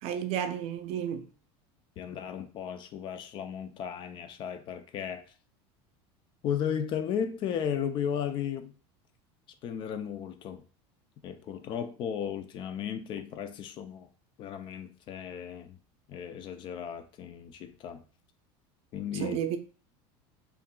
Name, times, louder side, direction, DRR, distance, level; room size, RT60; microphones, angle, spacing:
voice 1, 0.0-1.3 19.1-19.6, right 9 dB, 50° right, 0.5 m, -32 dB
voice 2, 2.0-5.3 6.4-8.8 9.6-10.6 11.2-14.1 14.4-15.8 16.1-18.0 18.9-19.4, left 8 dB, 40° left, 0.4 m, -35 dB
5.7 x 2.5 x 2.2 m
cardioid pair, 150°, 13 cm